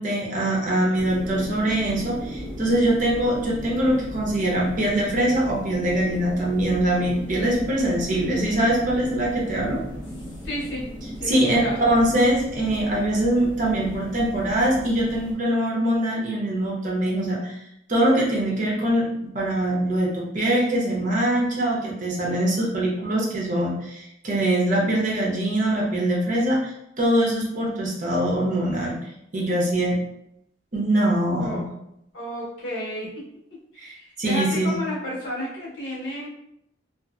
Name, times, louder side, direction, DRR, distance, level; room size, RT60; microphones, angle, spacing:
voice 1, 0.0-9.8 11.3-11.6 11.9-17.5 17.9-26.7 27.0-29.0 29.3-30.0 30.7-31.6 33.8-33.9 34.2-34.7, right 1 dB, 45° right, -3 dB, 0.8 m, -23 dB
sound 1, 1.0-15.3, equal, 10° right, 1.0 m, -36 dB
voice 2, 10.2-10.9 11.2-11.8 31.4-31.6 32.1-33.1 33.5-36.3, left 1 dB, 85° left, -6 dB, 1.1 m, -32 dB
2.7 x 2.5 x 2.4 m, 0.79 s
head